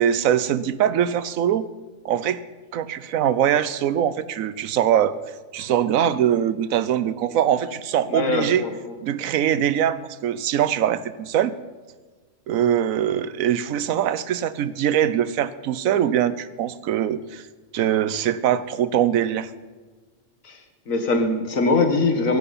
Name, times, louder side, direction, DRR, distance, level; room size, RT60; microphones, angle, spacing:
voice 1, 0.0-1.7 2.0-2.4 2.7-5.1 5.5-8.6 9.0-11.5 12.5-17.4 17.7-19.5, right 10 dB, 75° right, 15 dB, 1.1 m, -22 dB
voice 2, 8.1-8.7 20.4-20.6 20.9-22.4, left 3 dB, 70° left, 5 dB, 2.0 m, -21 dB
16.5 x 15.5 x 4.2 m, 1.4 s
omnidirectional pair, 1.4 m